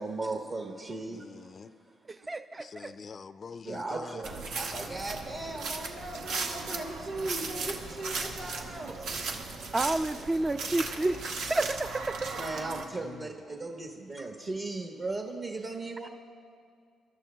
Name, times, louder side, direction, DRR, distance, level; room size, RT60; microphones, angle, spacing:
voice 1, 0.0-1.2 3.6-9.1 12.4-16.1, right 2 dB, 45° right, 1 dB, 1.2 m, -37 dB
voice 2, 1.1-1.7 2.6-4.3 13.0-13.4, left 5 dB, 40° left, 13 dB, 0.4 m, -45 dB
voice 3, 2.1-2.9 9.7-12.3, right 2 dB, 25° right, 10 dB, 0.4 m, -30 dB
sound 1, 4.2-12.8, right 4 dB, 85° right, 1.0 m, -37 dB
28.0 x 12.5 x 2.2 m, 2.2 s
cardioid pair, 90°, 0 cm